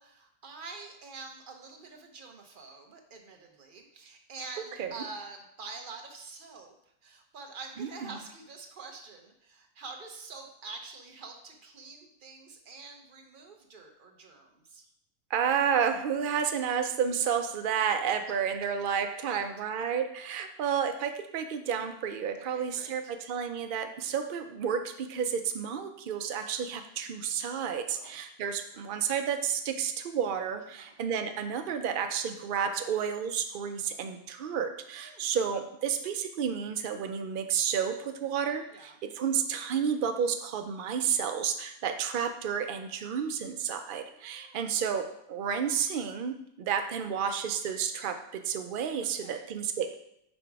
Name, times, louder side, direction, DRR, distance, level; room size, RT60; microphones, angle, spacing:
voice 1, 0.0-6.7 7.0-14.8 19.2-19.5 22.4-23.1 27.9-28.2 30.7-31.0 35.0-35.2 38.7-39.0 44.1-44.8 49.0-49.5, right 4 dB, 40° right, 3 dB, 0.9 m, -46 dB
voice 2, 7.8-8.1 15.3-49.9, right 7 dB, 90° right, 7 dB, 0.4 m, -31 dB
5.2 x 5.0 x 4.6 m, 0.77 s
omnidirectional pair, 1.5 m